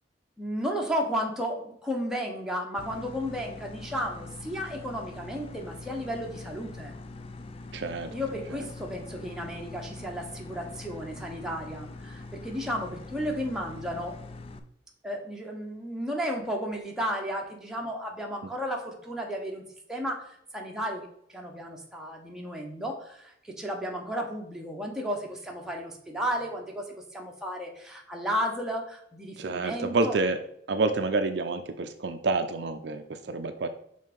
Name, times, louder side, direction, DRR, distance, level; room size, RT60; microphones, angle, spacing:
voice 1, 0.4-6.9 8.1-14.2 15.0-30.2, equal, 5° right, -1 dB, 0.9 m, -33 dB
sound 1, 2.8-14.6, left 3 dB, 30° left, 0.4 m, -43 dB
voice 2, 7.7-8.1 29.4-30.4 30.7-33.7, right 3 dB, 60° right, 8 dB, 0.5 m, -28 dB
5.5 x 3.4 x 5.2 m, 0.72 s
head